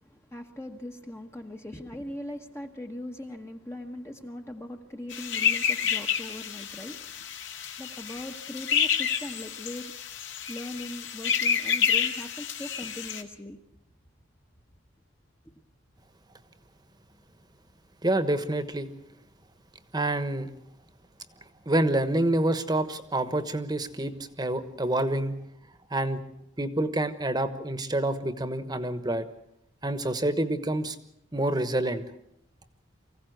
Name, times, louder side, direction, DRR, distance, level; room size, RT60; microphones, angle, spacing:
voice 1, 0.0-7.0 7.8-9.9 10.5-13.6, left 1 dB, 15° left, 3 dB, 1.1 m, -40 dB
sound 1, 5.1-13.2, left 8 dB, 60° left, 1.9 m, -29 dB
voice 2, 18.0-18.9 19.9-20.5 21.7-25.4 25.9-26.2 26.6-29.3 29.8-31.0 31.3-32.0, right 1 dB, 20° right, 11 dB, 1.2 m, -27 dB
24.5 x 16.0 x 8.0 m, 0.79 s
head